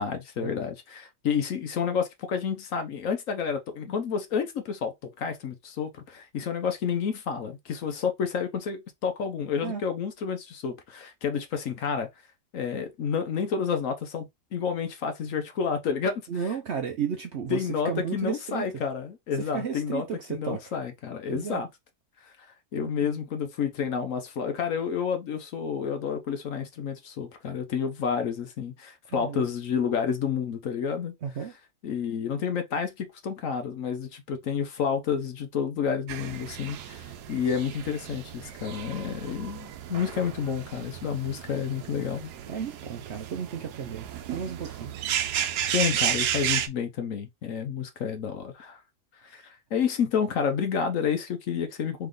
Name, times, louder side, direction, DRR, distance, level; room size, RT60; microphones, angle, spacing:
voice 1, 0.0-12.1 12.5-16.2 17.5-21.7 22.7-31.1 31.8-42.3 45.7-48.8 49.2-52.1, left 7 dB, 60° left, 1.0 m, -30 dB
voice 2, 16.3-18.7 19.4-20.6 21.3-21.6 29.1-29.5 31.2-31.5 42.4-44.9, right 7 dB, 60° right, 0.7 m, -33 dB
sound 1, 36.1-46.7, right 10 dB, 80° right, 1.2 m, -33 dB
3.5 x 3.2 x 3.7 m
omnidirectional pair, 1.7 m